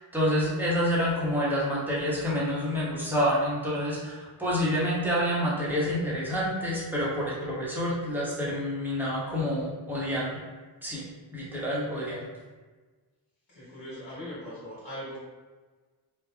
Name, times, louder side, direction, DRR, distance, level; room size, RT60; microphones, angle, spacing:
voice 1, 0.0-10.3 10.8-11.1 11.3-12.2, equal, 5° right, -7 dB, 1.1 m, -28 dB
voice 2, 13.5-15.2, equal, 70° left, -9 dB, 1.4 m, -40 dB
3.4 x 2.3 x 2.2 m, 1.3 s
cardioid pair, 45°, 47 cm